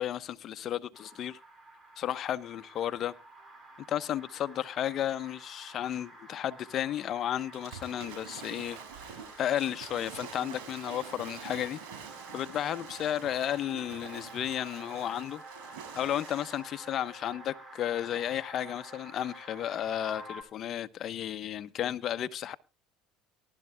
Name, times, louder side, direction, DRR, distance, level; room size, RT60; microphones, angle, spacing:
voice 1, 0.0-1.4 2.0-3.1 3.9-15.4 15.9-22.5, left 11 dB, 50° left, 0.9 m, -33 dB
sound 1, 0.9-20.4, right 1 dB, 25° right, 4.3 m, -50 dB
Waves surf / Splash splatter, 7.5-16.8, right 7 dB, 80° right, 5.6 m, -46 dB
19.5 x 12.0 x 2.2 m
supercardioid pair, 95°, 0 cm